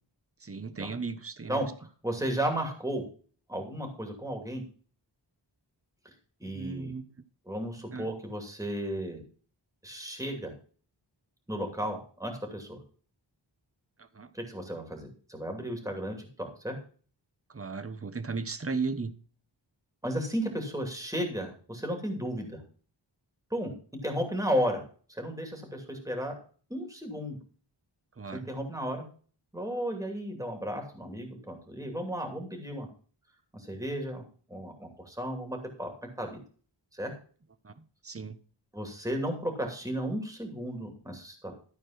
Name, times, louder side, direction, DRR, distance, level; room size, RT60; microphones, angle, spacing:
voice 1, 0.4-1.7 6.5-7.0 7.9-8.1 14.0-14.3 17.5-19.1 28.2-28.5 37.6-38.4, right 4 dB, 30° right, 0.9 m, -36 dB
voice 2, 1.5-3.0 3.5-4.6 6.4-6.9 7.5-9.2 9.8-10.5 11.5-12.8 14.3-16.8 20.0-22.6 23.5-23.7 24.0-24.8 25.1-26.3 26.7-27.4 28.3-29.0 29.5-32.9 33.5-34.2 34.5-35.9 36.2-36.4 36.9-37.1 38.7-41.5, equal, 5° right, 2.7 m, -34 dB
13.0 x 4.4 x 5.9 m
wide cardioid pair, 70°, 45 cm